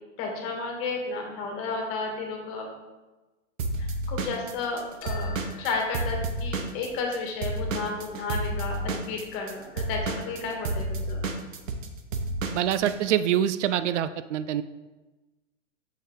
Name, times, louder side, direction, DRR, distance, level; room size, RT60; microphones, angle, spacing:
voice 1, 0.2-2.7 3.8-11.2, left 4 dB, 35° left, 1 dB, 1.6 m, -32 dB
Drum kit / Drum, 3.6-7.2 7.4-13.0, right 2 dB, 85° right, 1.0 m, -30 dB
sound 1, 5.0-6.9, left 7 dB, 55° left, 1.4 m, -49 dB
voice 2, 12.5-14.6, right 10 dB, 65° right, 13 dB, 0.5 m, -25 dB
6.8 x 5.6 x 3.6 m, 1.2 s
hypercardioid pair, 140°, 38 cm